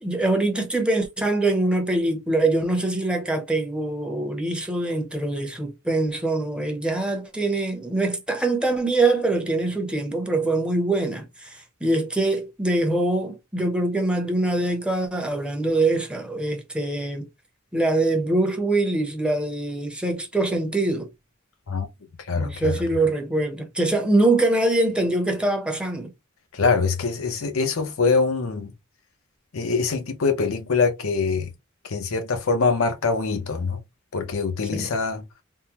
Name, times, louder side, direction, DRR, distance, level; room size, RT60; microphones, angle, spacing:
voice 1, 0.0-17.3 17.7-21.1 22.4-26.1 34.7-34.9, right 2 dB, 5° right, 0.7 m, -23 dB
voice 2, 22.3-22.8 26.5-28.7 29.5-31.5 31.8-33.8 34.1-35.2, left 4 dB, 80° left, 0.7 m, -24 dB
3.6 x 2.1 x 2.8 m
head